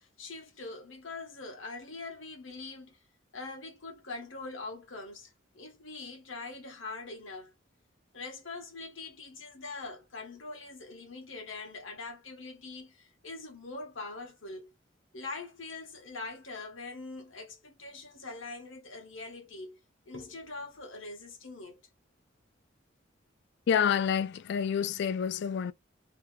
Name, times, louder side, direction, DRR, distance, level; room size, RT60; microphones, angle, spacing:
voice 1, 0.0-3.0 3.3-7.5 8.1-14.7 15.1-19.8 20.1-21.8, left 3 dB, 90° left, 1.6 m, -43 dB
voice 2, 23.7-25.7, left 7 dB, 65° left, 0.3 m, -28 dB
3.4 x 3.1 x 3.3 m
head